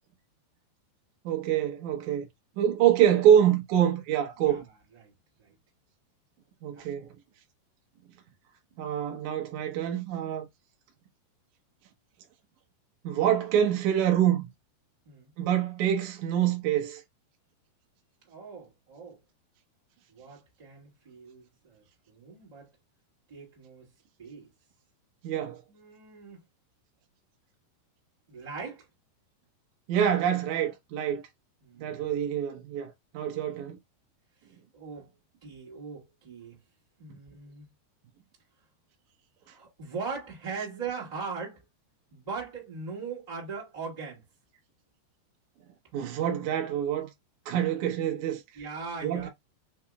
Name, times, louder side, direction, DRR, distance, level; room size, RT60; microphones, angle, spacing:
voice 1, 1.2-2.3 2.6-4.6 6.6-7.1 8.8-10.5 13.0-14.5 15.4-17.0 25.2-25.6 29.9-31.2 31.8-33.8 45.9-47.1 47.4-48.4 49.0-49.3, right 10 dB, 80° right, 1.7 m, -26 dB
voice 2, 6.7-7.1 15.0-15.3 18.2-19.2 20.1-22.7 23.3-23.9 24.2-24.5 25.7-26.4 28.3-28.8 31.6-32.1 34.7-35.1 35.4-36.6 37.0-37.7 39.4-41.6 42.1-44.2 48.5-49.3, right 5 dB, 15° right, 1.4 m, -40 dB
6.2 x 2.9 x 2.3 m
omnidirectional pair, 4.9 m